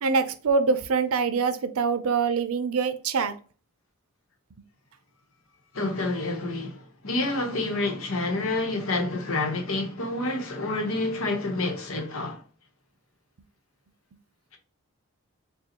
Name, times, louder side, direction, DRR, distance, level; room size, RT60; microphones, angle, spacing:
voice 1, 0.0-3.3, right 5 dB, 85° right, 0.5 m, -24 dB
voice 2, 5.7-12.4, left 2 dB, 75° left, 1.0 m, -28 dB
6.7 x 2.3 x 2.8 m
head